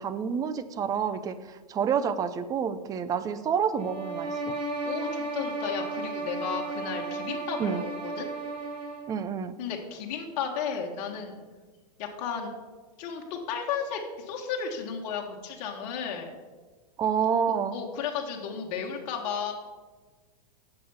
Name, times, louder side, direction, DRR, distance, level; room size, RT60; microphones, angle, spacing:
voice 1, 0.0-4.6 7.6-7.8 9.1-9.5 17.0-17.8, right 7 dB, 15° right, 12 dB, 0.4 m, -28 dB
sound 1, 3.8-9.2, right 3 dB, 85° right, 1.8 m, -34 dB
voice 2, 4.8-8.3 9.6-11.4 12.0-12.5 13.0-16.3 17.7-19.5, left 6 dB, 50° left, 0 dB, 1.5 m, -34 dB
8.4 x 6.8 x 5.5 m, 1.4 s
hypercardioid pair, 135°, 21 cm